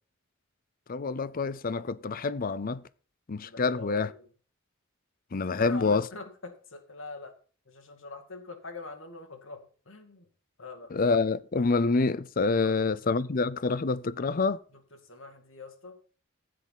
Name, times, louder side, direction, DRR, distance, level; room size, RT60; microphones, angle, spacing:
voice 1, 0.9-2.8 3.3-4.1 5.3-6.1 10.9-14.6, left 4 dB, 45° left, 0.5 m, -27 dB
voice 2, 3.4-4.3 5.3-7.3 7.7-10.3 10.6-10.9 12.6-12.8 13.0-13.1 15.0-16.0, left 3 dB, 65° left, 2.2 m, -44 dB
14.5 x 7.7 x 4.1 m
head